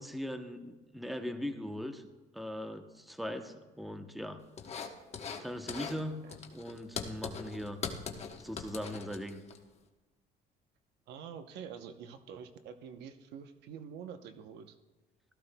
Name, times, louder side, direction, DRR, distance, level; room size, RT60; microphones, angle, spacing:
voice 1, 0.0-2.1 2.3-4.4 5.4-6.2 6.5-7.8 8.4-9.4, equal, ahead, 7 dB, 0.8 m, -40 dB
sound 1, 4.6-5.4 5.7-6.0 6.3-9.6, left 5 dB, 40° left, 1.1 m, -41 dB
voice 2, 11.1-14.8, right 7 dB, 85° right, 8 dB, 0.8 m, -47 dB
16.5 x 14.0 x 2.2 m, 1.2 s
cardioid pair, 110°, 17 cm